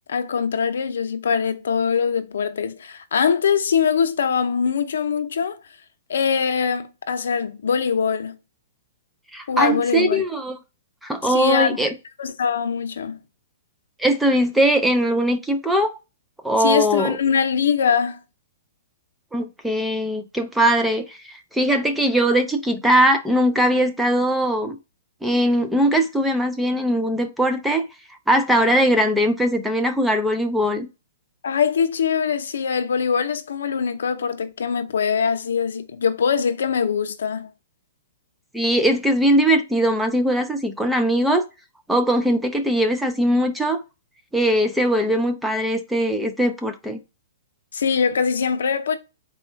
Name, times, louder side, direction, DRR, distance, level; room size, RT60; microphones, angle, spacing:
voice 1, 0.1-5.6 6.1-8.4 9.5-10.2 11.3-11.8 12.2-13.2 16.6-18.2 31.4-37.5 47.7-49.0, left 6 dB, 85° left, 0.6 m, -22 dB
voice 2, 9.3-10.6 11.0-11.9 14.0-16.0 16.4-17.2 19.3-24.8 25.2-27.9 28.3-30.9 38.5-41.4 41.9-43.8 44.3-47.0, right 1 dB, 5° right, 0.4 m, -20 dB
4.1 x 2.3 x 4.3 m
hypercardioid pair, 160°, 0 cm